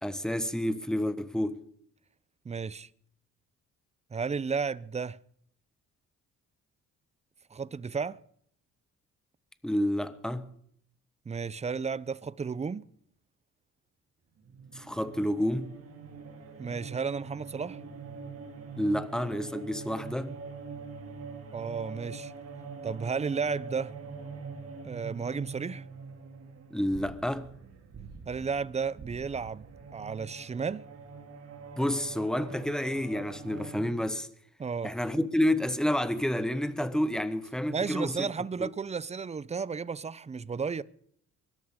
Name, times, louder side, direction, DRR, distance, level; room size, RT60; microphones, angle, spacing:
voice 1, 0.0-1.6 9.6-10.5 14.7-15.7 18.8-20.4 26.7-27.5 31.8-34.3 34.8-38.3 38.6-38.7, left 1 dB, ahead, 1.2 m, -29 dB
voice 2, 2.4-2.9 4.1-5.2 7.5-8.2 11.3-12.8 16.6-17.8 21.5-22.3 22.8-23.9 24.8-25.8 28.3-29.7 29.9-30.9 34.6-34.9 37.7-40.8, right 5 dB, 20° right, 0.6 m, -33 dB
sound 1, 14.4-33.8, right 4 dB, 50° right, 2.5 m, -44 dB
24.0 x 12.5 x 3.8 m
cardioid pair, 90°, 30 cm